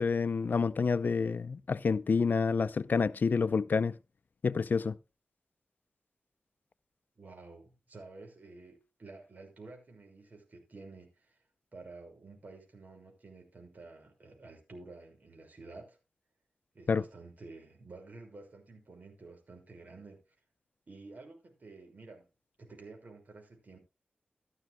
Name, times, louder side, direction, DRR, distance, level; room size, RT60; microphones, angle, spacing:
voice 1, 0.0-3.9 4.4-5.0 16.9-17.0, left 5 dB, 60° left, 0.5 m, -28 dB
voice 2, 7.2-11.4 11.7-16.0 16.7-20.2 20.9-22.3 22.6-23.8, right 3 dB, 50° right, 5.9 m, -51 dB
15.5 x 12.5 x 2.2 m
wide cardioid pair, 115°, 4 cm